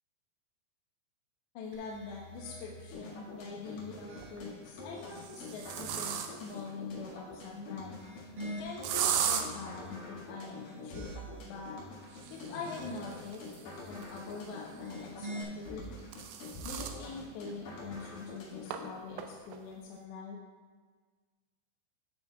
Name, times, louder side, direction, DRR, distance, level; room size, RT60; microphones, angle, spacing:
voice 1, 1.6-8.0 8.6-11.8 12.3-15.9 16.6-20.4, left 4 dB, 80° left, -3 dB, 2.9 m, -44 dB
sound 1, 1.7-3.0 3.6-4.7 5.2-6.3 7.8-9.9 10.4-11.6 12.1-13.2 14.6-15.4, right 1 dB, 65° right, 2.3 m, -47 dB
sound 2, 2.5-2.6 4.0-4.4 5.0-6.6 8.8-9.4 12.0-14.7 15.7-17.0 17.5-17.6 17.9-18.0 18.7-18.8 19.2-19.6, right 9 dB, 80° right, 2.8 m, -36 dB
sound 3, 2.9-18.9, left 2 dB, 60° left, 3.0 m, -46 dB
16.0 x 7.2 x 2.2 m, 1.5 s
omnidirectional pair, 5.2 m